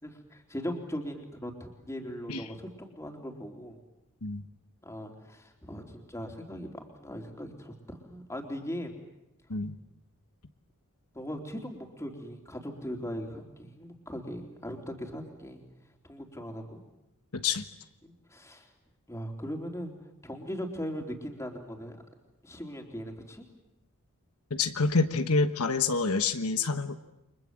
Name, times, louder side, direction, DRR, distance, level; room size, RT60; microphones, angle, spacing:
voice 1, 0.0-3.8 4.8-8.9 11.1-15.6 16.0-16.8 18.0-18.7 19.1-19.9 20.2-22.0 22.4-23.5, equal, 15° left, 2 dB, 3.6 m, -39 dB
voice 2, 17.3-17.6 24.5-27.0, left 4 dB, 80° left, 8 dB, 1.3 m, -27 dB
30.0 x 24.5 x 7.7 m, 0.91 s
head